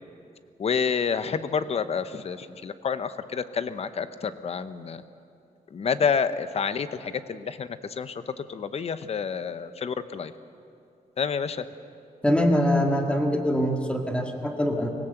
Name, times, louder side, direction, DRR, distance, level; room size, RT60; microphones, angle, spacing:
voice 1, 0.6-5.0 5.7-10.3 11.2-11.7, left 6 dB, 45° left, 12 dB, 0.8 m, -29 dB
voice 2, 12.2-14.9, equal, 5° left, 2 dB, 1.9 m, -23 dB
25.0 x 17.0 x 7.9 m, 2.6 s
wide cardioid pair, 160°, 15 cm